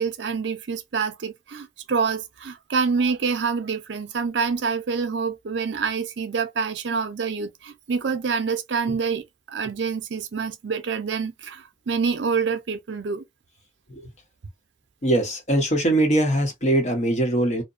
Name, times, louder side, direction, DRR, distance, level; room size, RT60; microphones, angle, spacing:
voice 1, 0.0-13.2, right 5 dB, 80° right, 0.5 m, -26 dB
voice 2, 15.0-17.6, right 1 dB, 40° left, 0.8 m, -21 dB
2.7 x 2.1 x 2.4 m
head